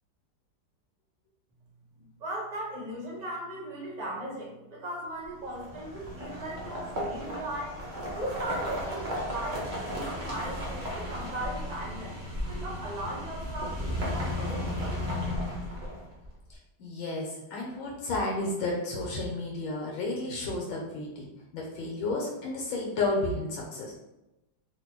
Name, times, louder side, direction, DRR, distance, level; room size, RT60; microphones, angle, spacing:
voice 1, 2.2-7.8 8.2-12.2 12.5-15.1, right 1 dB, 35° right, -5 dB, 0.6 m, -37 dB
sound 1, 5.4-16.3, left 1 dB, 80° right, 0.4 m, -35 dB
voice 2, 16.8-21.2 21.5-24.0, left 2 dB, 75° left, -2 dB, 1.4 m, -32 dB
3.6 x 2.6 x 2.9 m, 0.94 s
omnidirectional pair, 2.3 m